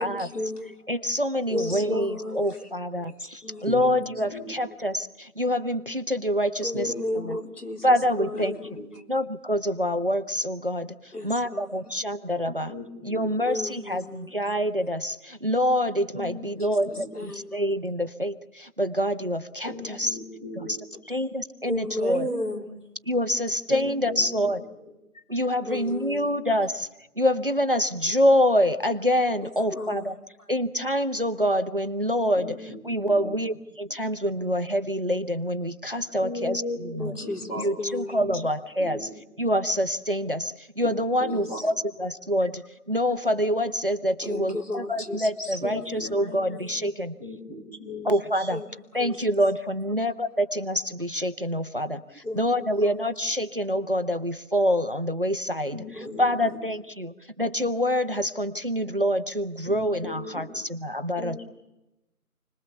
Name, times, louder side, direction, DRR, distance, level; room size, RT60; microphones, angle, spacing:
voice 1, 0.0-0.7 1.5-2.7 3.4-3.7 6.6-8.6 8.9-9.0 11.1-11.8 13.5-14.4 16.6-17.6 21.7-22.8 25.7-26.3 29.4-30.1 37.0-38.2 41.3-41.6 44.2-45.9 46.2-46.3 48.5-48.7 49.0-49.4 49.9-50.0 52.2-53.0 55.9-56.4, left 1 dB, 80° left, 4 dB, 4.0 m, -34 dB
voice 2, 0.9-6.9 7.2-7.4 7.8-8.6 9.1-12.7 13.0-20.2 20.6-20.7 21.1-22.3 23.0-24.6 25.3-26.9 27.2-30.2 30.5-32.6 32.8-37.2 37.6-39.1 39.4-41.7 42.0-47.1 48.0-48.6 48.9-61.4, equal, 35° right, 10 dB, 0.8 m, -26 dB
voice 3, 3.6-4.5 6.7-7.3 8.3-8.9 12.4-13.7 16.1-17.1 19.6-20.8 21.0-21.3 23.7-24.8 25.1-25.2 32.4-32.8 33.0-33.4 36.2-37.7 38.2-38.3 38.8-39.0 40.8-41.7 45.6-46.9 47.2-48.5 55.5-56.6 59.6-60.8 61.1-61.4, left 2 dB, 25° left, -3 dB, 4.9 m, -38 dB
29.0 x 21.0 x 7.1 m, 0.93 s
figure-of-eight pair, 170°, 45 cm